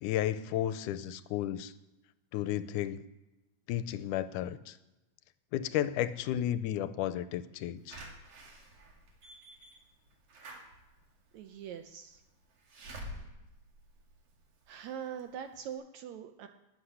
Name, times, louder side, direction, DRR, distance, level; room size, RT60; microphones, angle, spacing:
voice 1, 0.0-1.7 2.3-3.0 3.7-4.7 5.5-8.0, left 11 dB, 80° left, 14 dB, 2.1 m, -33 dB
Slam / Alarm, 7.9-14.7 15.2-15.3 15.5-15.6, equal, 55° right, 2.9 m, -49 dB
voice 2, 11.3-12.2 14.7-16.5, right 8 dB, 75° right, 7 dB, 1.9 m, -42 dB
13.0 x 8.3 x 10.0 m, 1.0 s
omnidirectional pair, 3.7 m